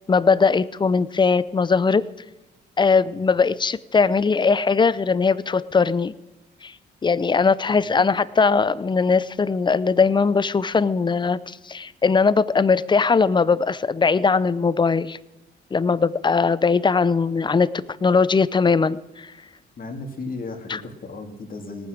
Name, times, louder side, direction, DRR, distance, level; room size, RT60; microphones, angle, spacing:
voice 1, 0.1-2.0 2.8-6.1 6.6-6.7 7.0-15.2 15.7-17.7 18.0-19.3 20.7-20.8, left 5 dB, 25° left, 17 dB, 0.6 m, -20 dB
voice 2, 19.8-21.9, left 3 dB, 45° left, 4 dB, 2.6 m, -35 dB
18.5 x 9.3 x 6.6 m, 1.0 s
cardioid pair, 90°, 20 cm